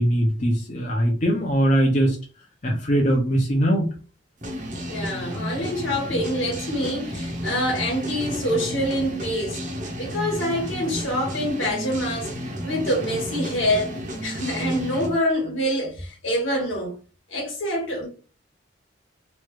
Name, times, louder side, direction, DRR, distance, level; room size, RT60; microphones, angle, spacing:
voice 1, 0.0-2.2 2.6-3.9, equal, 40° left, 0.6 m, -21 dB
sound 1, 4.4-15.2, equal, 40° right, 0.6 m, -32 dB
voice 2, 4.9-9.6 10.0-12.3 12.6-16.9 17.3-18.1, equal, 85° left, 1.3 m, -26 dB
3.1 x 2.4 x 3.0 m
head